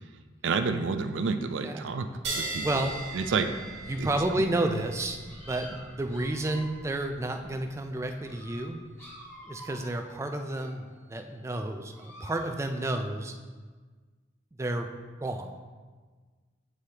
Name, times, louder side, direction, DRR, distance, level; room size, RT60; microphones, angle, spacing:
voice 1, 0.4-2.1 2.4-2.9 3.1-3.5 4.0-4.5, right 4 dB, 80° right, 9 dB, 0.4 m, -30 dB
sound 1, 2.2-9.2, right 3 dB, 60° right, 1.5 m, -40 dB
voice 2, 2.6-3.0 3.9-8.8 9.4-13.3 14.6-14.9 15.2-15.5, right 1 dB, 15° right, 5 dB, 0.3 m, -31 dB
sound 2, 5.3-7.0 7.8-7.9 8.2-11.0 11.9-12.5, equal, 15° left, 1.3 m, -49 dB
7.6 x 4.8 x 2.9 m, 1.4 s
head